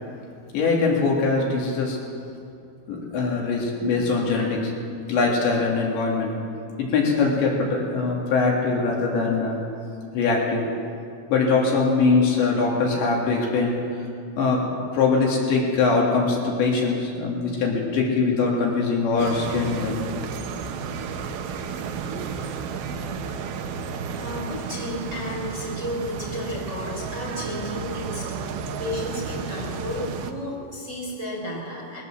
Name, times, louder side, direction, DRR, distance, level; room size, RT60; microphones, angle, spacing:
voice 1, 0.5-2.0 2.9-4.7 5.1-6.4 6.8-9.6 10.1-10.7 11.3-13.8 14.4-14.6 14.9-20.0, left 4 dB, 65° left, -2 dB, 5.1 m, -22 dB
sound 1, 19.2-30.3, right 5 dB, 70° right, 2.4 m, -32 dB
voice 2, 24.2-28.5 28.8-32.0, left 1 dB, 15° right, -4 dB, 4.1 m, -32 dB
21.5 x 17.0 x 7.6 m, 2.5 s
omnidirectional pair, 5.7 m